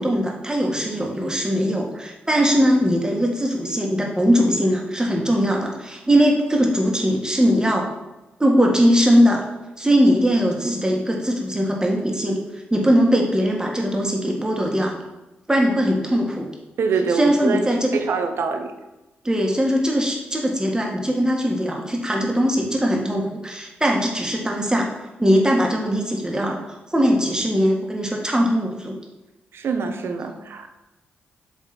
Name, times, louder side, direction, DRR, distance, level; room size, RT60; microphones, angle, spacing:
voice 1, 0.0-7.9 8.4-9.4 9.8-12.4 12.7-14.9 15.5-16.5 17.1-18.0 19.2-24.9 25.2-28.9, equal, 15° right, 0 dB, 1.7 m, -20 dB
voice 2, 16.8-17.7 17.9-18.7 29.5-30.8, right 5 dB, 70° right, 7 dB, 0.7 m, -24 dB
7.2 x 3.6 x 4.3 m, 1.0 s
supercardioid pair, 50°, 4 cm